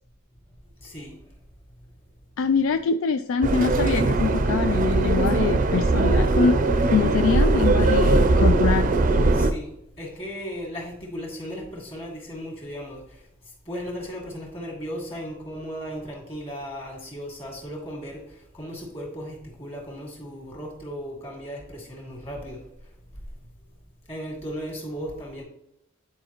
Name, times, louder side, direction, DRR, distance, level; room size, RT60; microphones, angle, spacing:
voice 1, 0.8-1.3 9.3-23.2 24.1-25.4, equal, 30° left, -2 dB, 2.2 m, -36 dB
voice 2, 2.4-6.6 6.9-8.9, left 6 dB, 75° left, 10 dB, 0.3 m, -24 dB
Subway metro underground, 3.4-9.5, right 2 dB, 40° right, 0.5 m, -20 dB
9.4 x 4.8 x 3.0 m, 0.79 s
head